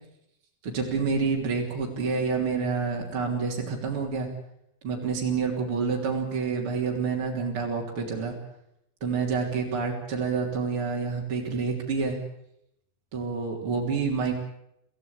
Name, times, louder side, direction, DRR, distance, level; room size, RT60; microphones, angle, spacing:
voice 1, 0.6-4.3 4.8-8.3 9.0-12.2 13.1-14.3, right 5 dB, 35° right, -1 dB, 4.0 m, -28 dB
26.5 x 16.0 x 8.7 m, 0.77 s
omnidirectional pair, 4.2 m